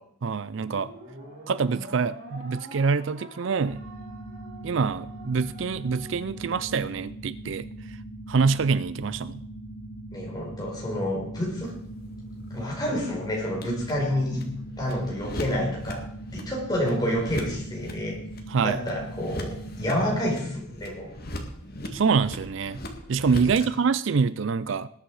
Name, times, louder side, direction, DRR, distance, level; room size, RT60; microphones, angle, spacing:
voice 1, 0.2-0.9 1.5-3.8 4.6-7.7 8.3-9.4 18.5-18.8 21.9-22.8 23.1-24.9, right 5 dB, 60° right, 17 dB, 0.4 m, -25 dB
sound 1, 0.5-7.1, right 1 dB, 45° right, 3.8 m, -46 dB
sound 2, 3.6-20.3, right 1 dB, 75° left, 1.3 m, -41 dB
voice 2, 10.1-11.7 12.5-14.5 14.8-16.0 16.3-18.2 18.6-21.1 23.5-23.6, equal, 20° left, -3 dB, 4.9 m, -28 dB
sound 3, 11.6-23.6, left 1 dB, 45° left, 2.1 m, -40 dB
20.0 x 8.8 x 4.9 m, 0.68 s
head